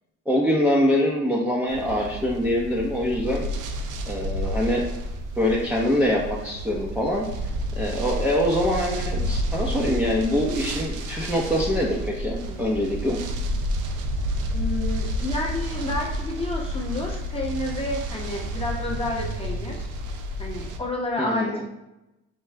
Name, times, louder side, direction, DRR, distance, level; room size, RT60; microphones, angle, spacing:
voice 1, 0.3-3.5 4.1-4.8 5.4-7.3 7.8-13.2 21.3-21.6, left 1 dB, 5° right, -5 dB, 0.7 m, -24 dB
sound 1, 1.7-20.8, equal, 80° right, 0.5 m, -30 dB
voice 2, 14.5-19.9 20.4-21.6, left 2 dB, 20° left, -1 dB, 1.0 m, -30 dB
4.6 x 2.4 x 3.2 m, 0.92 s
cardioid pair, 90°, 30 cm